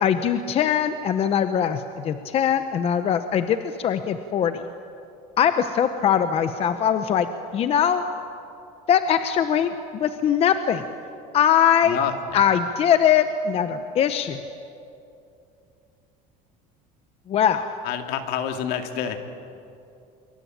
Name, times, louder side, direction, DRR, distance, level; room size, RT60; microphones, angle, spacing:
voice 1, 0.0-4.6 5.4-7.3 7.5-8.0 8.9-10.8 11.3-12.0 12.3-14.4 17.3-17.7, left 8 dB, 35° left, 9 dB, 0.9 m, -21 dB
voice 2, 11.8-12.4 17.8-19.3, left 8 dB, 65° left, 5 dB, 2.5 m, -28 dB
26.0 x 23.5 x 8.8 m, 2.7 s
cardioid pair, 155°, 17 cm